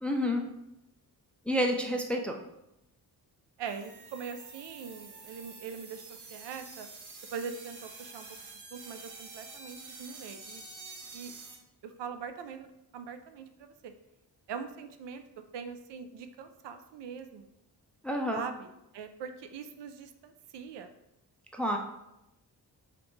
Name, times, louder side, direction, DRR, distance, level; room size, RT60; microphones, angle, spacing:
voice 1, 0.0-0.5 1.5-2.4 18.0-18.4 21.5-21.8, equal, 5° left, 2 dB, 0.3 m, -29 dB
sound 1, 3.6-11.6, right 4 dB, 45° right, 0.7 m, -48 dB
voice 2, 3.6-6.9 7.3-8.3 8.7-10.6 11.1-11.3 11.8-13.9 14.5-15.2 15.5-17.5 18.3-20.9, right 6 dB, 80° right, 8 dB, 0.5 m, -42 dB
5.1 x 2.5 x 3.1 m, 0.86 s
wide cardioid pair, 105°, 41 cm